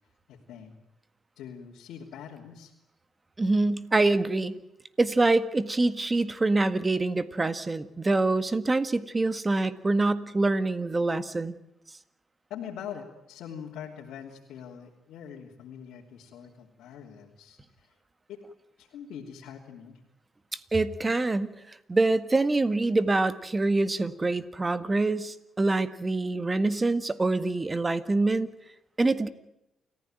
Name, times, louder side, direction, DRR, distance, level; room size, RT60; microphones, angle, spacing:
voice 1, 0.3-0.7 1.4-2.7 12.5-18.0 18.3-18.4 18.8-20.0, left 8 dB, 80° left, -3 dB, 3.1 m, -43 dB
voice 2, 3.4-4.6 5.0-11.6 20.5-21.5 21.9-28.5 29.0-29.3, right 2 dB, 20° right, 12 dB, 1.8 m, -25 dB
29.0 x 15.0 x 9.1 m, 0.86 s
cardioid pair, 90°, 0 cm